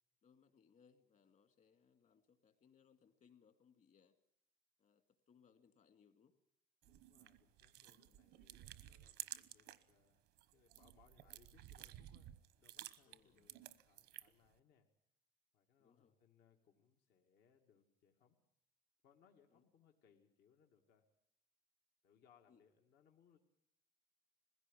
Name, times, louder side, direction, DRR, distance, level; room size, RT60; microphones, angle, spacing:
voice 1, 0.2-4.1 4.8-6.3 7.8-8.2 13.1-13.5 15.8-16.1 19.5-19.6 22.5-22.6, left 6 dB, 50° left, 8 dB, 2.4 m, -71 dB
voice 2, 6.8-10.2 10.5-14.9 15.5-18.4 19.0-21.1 22.0-23.4, left 7 dB, 75° left, 2 dB, 2.2 m, -72 dB
sound 1, 6.8-9.9 10.3-14.5, right 14 dB, 90° right, 1.1 m, -54 dB
21.0 x 16.5 x 9.9 m, 0.72 s
cardioid pair, 110°, 17 cm